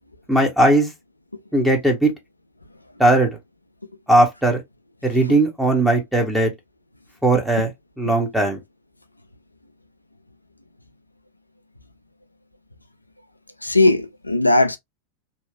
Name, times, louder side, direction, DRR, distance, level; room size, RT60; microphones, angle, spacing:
voice 1, 0.3-0.9 1.5-2.1 3.0-3.3 4.1-4.6 5.0-6.5 7.2-7.7 8.0-8.6, right 1 dB, ahead, 0.8 m, -18 dB
voice 2, 13.6-14.8, left 2 dB, 85° left, 0.3 m, -18 dB
2.8 x 2.3 x 2.2 m
figure-of-eight pair, 90°, 0 cm